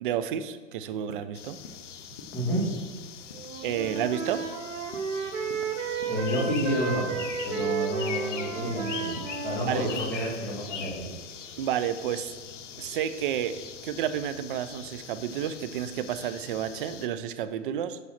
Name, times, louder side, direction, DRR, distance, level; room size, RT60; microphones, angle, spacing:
voice 1, 0.0-1.6 3.6-4.4 9.7-9.9 11.6-12.3 12.8-18.0, right 10 dB, 45° right, 11 dB, 0.4 m, -31 dB
sound 1, 1.1-1.2 1.6-1.8 2.2-2.3 2.7-2.9 3.3-3.5 3.8-4.0 4.4-4.5 4.9-5.1 5.5-6.2 6.5-6.7 7.1-7.2 7.6-7.7 8.1-8.3 8.6-8.8 9.2-9.3 9.7-9.9, left 4 dB, 25° left, 0.4 m, -45 dB
sound 2, 1.3-17.1, left 8 dB, 85° left, 0.7 m, -42 dB
Wind instrument woodwind instrument, 3.3-10.1, right 6 dB, 90° right, 1.1 m, -33 dB
voice 2, 6.1-11.1, equal, 5° left, -8 dB, 1.7 m, -30 dB
4.9 x 4.0 x 5.7 m, 1.5 s
hypercardioid pair, 155°, 36 cm